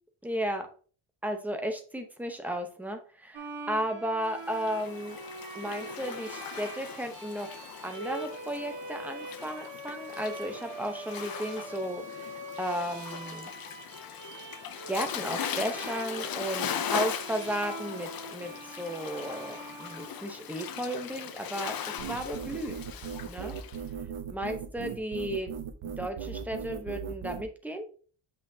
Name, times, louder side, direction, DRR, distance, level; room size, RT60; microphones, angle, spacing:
voice 1, 0.2-0.7 1.2-5.2 5.5-7.5 7.8-13.5 14.9-21.7 22.1-22.8 23.2-23.5 24.3-25.5 26.0-27.9, equal, 5° right, 4 dB, 0.8 m, -34 dB
Bowed string instrument, 3.3-20.8, right 2 dB, 60° right, 1.9 m, -43 dB
Waves surf, 4.4-23.8, left 8 dB, 45° left, 0.6 m, -39 dB
sound 1, 22.0-27.4, right 7 dB, 90° right, 0.9 m, -38 dB
7.8 x 5.8 x 2.7 m, 0.42 s
wide cardioid pair, 175°, 49 cm